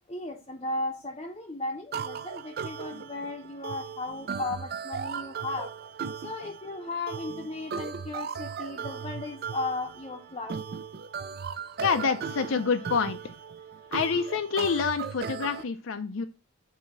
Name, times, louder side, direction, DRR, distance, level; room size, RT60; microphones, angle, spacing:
voice 1, 0.1-5.7 6.2-10.5, left 2 dB, 25° left, 0 dB, 0.7 m, -35 dB
sound 1, 1.9-15.6, right 6 dB, 45° right, 0.3 m, -37 dB
voice 2, 11.8-13.3 13.9-16.3, left 5 dB, 65° left, 8 dB, 0.5 m, -27 dB
6.8 x 2.8 x 5.3 m, 0.30 s
head